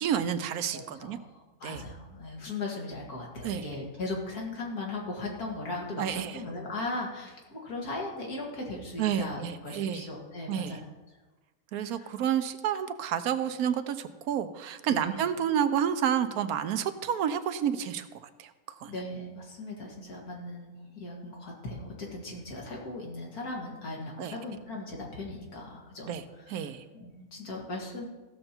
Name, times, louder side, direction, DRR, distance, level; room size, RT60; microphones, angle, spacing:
voice 1, 0.0-1.2 1.6-1.8 3.4-3.6 6.0-6.4 9.0-10.0 10.5-10.7 11.7-18.1 18.4-18.5 18.8-18.9 24.2-24.3 26.1-26.2 26.5-26.8, right 9 dB, 85° right, 11 dB, 1.1 m, -29 dB
voice 2, 0.7-11.2 11.8-12.1 14.9-15.2 18.9-28.1, left 2 dB, 85° left, -2 dB, 2.5 m, -38 dB
15.5 x 6.6 x 4.4 m, 1.2 s
omnidirectional pair, 1.6 m